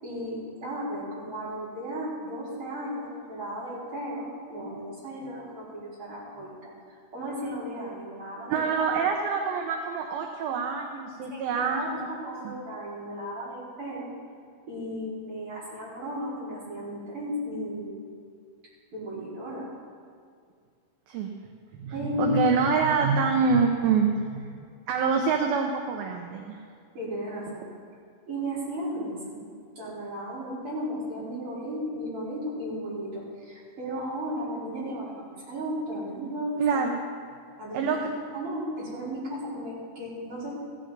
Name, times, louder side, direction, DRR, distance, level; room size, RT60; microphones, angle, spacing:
voice 1, 0.0-6.7 7.1-9.0 11.3-14.1 14.7-18.0 18.9-19.7 21.9-22.8 26.9-27.7 28.3-29.4 29.8-36.8 37.6-40.5, equal, 35° right, -9 dB, 5.1 m, -34 dB
voice 2, 8.5-12.1 12.5-12.6 21.1-21.3 21.8-26.6 36.6-37.0 37.7-38.0, right 5 dB, 75° right, 3 dB, 2.5 m, -26 dB
15.5 x 13.0 x 4.0 m, 2.2 s
omnidirectional pair, 4.5 m